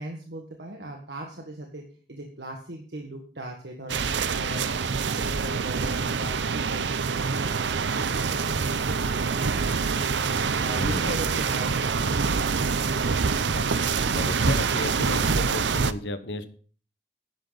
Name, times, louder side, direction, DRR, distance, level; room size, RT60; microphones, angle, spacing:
voice 1, 0.0-1.8 2.1-7.0 7.3-7.7 7.9-12.3, right 1 dB, 70° right, 1 dB, 1.7 m, -39 dB
sound 1, 3.9-15.9, right 5 dB, 85° right, 0.6 m, -26 dB
voice 2, 10.7-11.4 13.4-16.5, left 2 dB, 80° left, 10 dB, 1.2 m, -34 dB
11.0 x 10.5 x 4.0 m, 0.43 s
head